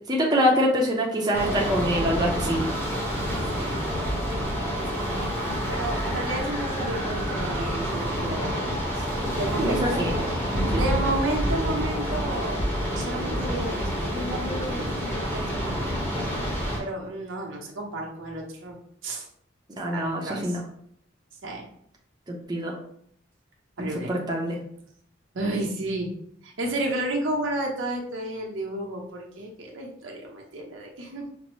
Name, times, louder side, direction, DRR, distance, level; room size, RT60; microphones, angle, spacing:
voice 1, 0.1-2.6 9.6-10.8 19.8-20.6 22.3-22.7 23.8-24.6, equal, 20° right, -2 dB, 0.6 m, -25 dB
sound 1, 1.3-16.8, equal, 10° left, 0.9 m, -28 dB
voice 2, 3.3-4.2 4.8-9.1 9.3-12.6 13.0-15.8 16.8-18.8 19.0-19.3 19.9-20.6 21.4-21.7 23.8-24.1 25.3-26.1 26.4-31.3, right 1 dB, 90° right, 0 dB, 0.8 m, -32 dB
5.2 x 2.0 x 3.0 m, 0.66 s
head